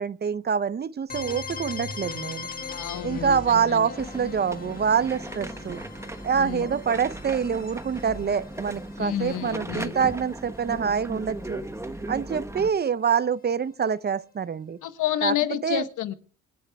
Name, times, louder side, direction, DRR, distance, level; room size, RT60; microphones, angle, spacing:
voice 1, 0.0-2.5 3.0-5.8 6.2-11.6 12.1-14.8 15.2-15.3 15.6-15.9, right 7 dB, 35° right, 0.6 m, -26 dB
sound 1, 1.1-10.8, left 5 dB, 30° left, 1.9 m, -40 dB
voice 2, 2.6-3.9 6.4-6.7 9.0-9.9 14.8-16.1, left 12 dB, 85° left, 1.2 m, -30 dB
sound 2, 4.0-12.7, right 1 dB, 10° right, 1.2 m, -37 dB
26.5 x 9.3 x 3.4 m
cardioid pair, 90°, 30 cm